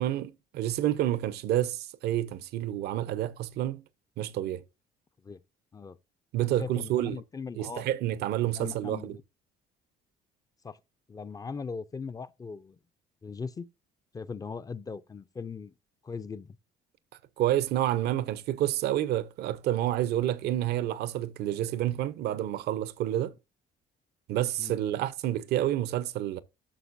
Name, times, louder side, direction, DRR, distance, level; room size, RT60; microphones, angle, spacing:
voice 1, 0.0-3.8 4.2-4.6 6.3-7.2 7.6-9.2 17.4-23.3 24.3-26.4, right 13 dB, 75° right, 0.8 m, -29 dB
voice 2, 6.4-7.9 8.5-9.2 10.6-10.8 11.1-12.8 13.2-13.7 14.1-15.7 16.0-16.6 24.6-24.7, left 5 dB, 20° left, 0.5 m, -39 dB
11.5 x 6.5 x 2.5 m
cardioid pair, 110°, 17 cm